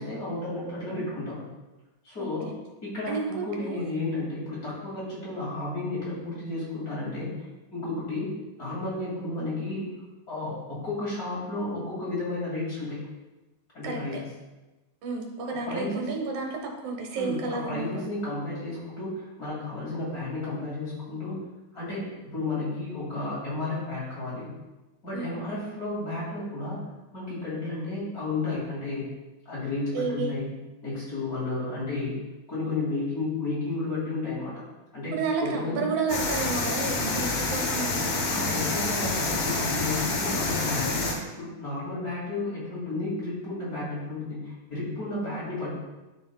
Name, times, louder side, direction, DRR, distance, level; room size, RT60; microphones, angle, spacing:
voice 1, 0.0-1.4 2.0-2.5 2.8-7.3 7.7-8.3 8.6-9.9 10.3-13.0 13.7-14.2 15.7-16.1 17.2-21.4 21.7-24.5 25.0-26.8 27.1-29.1 29.5-30.5 30.8-32.2 32.5-34.7 34.9-35.9 38.3-45.8, left 2 dB, 35° left, -7 dB, 2.3 m, -32 dB
voice 2, 3.1-3.9 13.8-14.2 15.0-18.1 25.1-25.4 29.9-30.3 35.1-38.3, right 4 dB, 75° right, 1 dB, 2.4 m, -31 dB
sound 1, 36.1-41.1, left 3 dB, 65° left, 1.9 m, -28 dB
10.5 x 4.7 x 2.3 m, 1.1 s
omnidirectional pair, 3.4 m